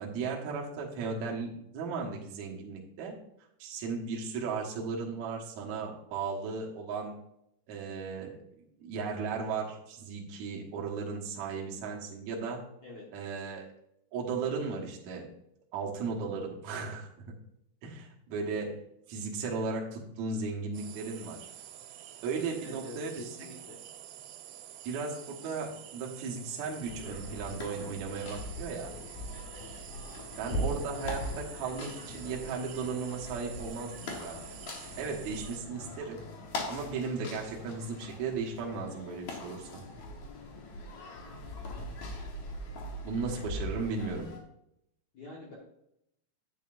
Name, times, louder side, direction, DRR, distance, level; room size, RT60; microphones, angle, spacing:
voice 1, 0.0-3.1 3.6-7.1 7.7-8.4 8.8-12.7 13.1-13.7 14.1-15.3 15.7-17.1 17.8-18.8 19.1-21.4 22.2-23.2 24.8-28.9 30.4-34.4 35.0-36.2 36.7-39.8 43.0-44.3, right 4 dB, 70° right, -1 dB, 1.8 m, -36 dB
sound 1, 20.7-35.6, right 12 dB, 85° right, 3.1 m, -48 dB
voice 2, 22.6-23.8 45.1-45.5, left 2 dB, 65° left, -4 dB, 1.9 m, -46 dB
sound 2, 26.8-44.4, left 1 dB, 80° left, 1.6 m, -41 dB
10.5 x 8.2 x 2.5 m, 0.78 s
omnidirectional pair, 5.5 m